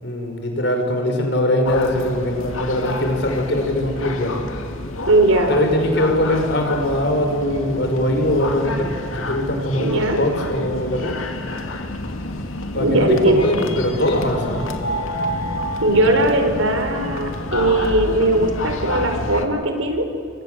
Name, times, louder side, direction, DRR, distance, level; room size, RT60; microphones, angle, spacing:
voice 1, 0.0-4.4 5.5-11.2 12.7-14.8, left 1 dB, 60° left, 3 dB, 5.5 m, -21 dB
sound 1, 1.6-19.5, left 1 dB, 90° left, 2.6 m, -29 dB
voice 2, 5.1-5.5 9.8-10.2 12.7-13.5 15.8-20.0, right 1 dB, 85° right, 5 dB, 4.9 m, -18 dB
29.0 x 24.0 x 7.8 m, 2.4 s
head